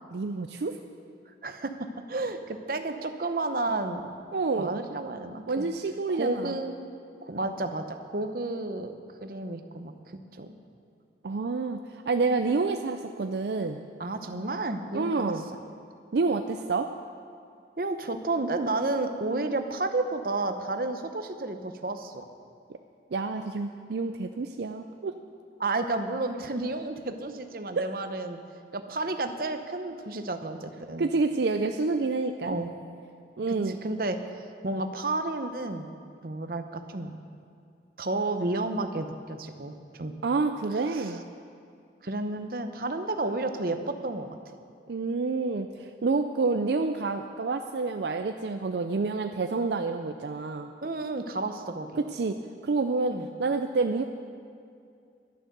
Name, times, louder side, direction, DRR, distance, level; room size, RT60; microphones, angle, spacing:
voice 1, 0.1-0.8 4.3-4.8 5.5-6.6 11.2-13.8 14.9-15.5 16.1-16.9 23.1-25.2 27.8-27.9 31.0-32.6 33.4-33.8 40.2-41.2 44.9-50.7 52.1-52.4 52.6-54.0, right 3 dB, 70° right, 6 dB, 0.5 m, -28 dB
voice 2, 1.4-1.7 2.1-4.1 4.6-5.7 6.1-6.7 7.2-8.9 9.2-9.9 10.3-10.5 14.0-15.4 17.8-22.2 25.6-28.4 28.7-31.1 32.5-32.7 33.5-34.2 34.6-35.9 36.2-37.1 38.0-40.1 40.9-41.2 42.0-44.3 50.8-51.9 53.1-53.3, right 2 dB, 50° right, 7 dB, 0.8 m, -31 dB
12.0 x 10.0 x 6.8 m, 2.4 s
head